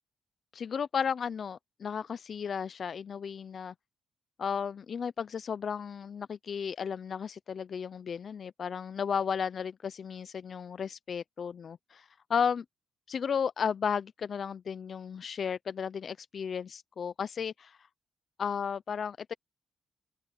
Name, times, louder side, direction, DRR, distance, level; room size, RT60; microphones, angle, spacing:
voice 1, 0.5-3.7 4.4-12.6 13.1-17.8 18.4-19.3, left 7 dB, 45° left, 0.4 m, -34 dB
open air
cardioid pair, 120°, 0 cm